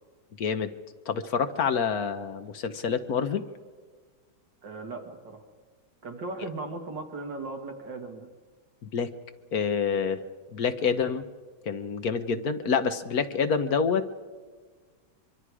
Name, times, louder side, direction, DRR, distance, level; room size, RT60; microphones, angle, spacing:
voice 1, 0.4-0.7 1.1-3.4 8.8-9.1 9.5-10.2 10.5-11.2 11.6-14.2, left 6 dB, 55° left, 9 dB, 1.3 m, -27 dB
voice 2, 4.6-5.4 6.0-8.3, right 3 dB, 65° right, 3 dB, 2.6 m, -37 dB
24.0 x 23.5 x 4.9 m, 1.5 s
omnidirectional pair, 2.2 m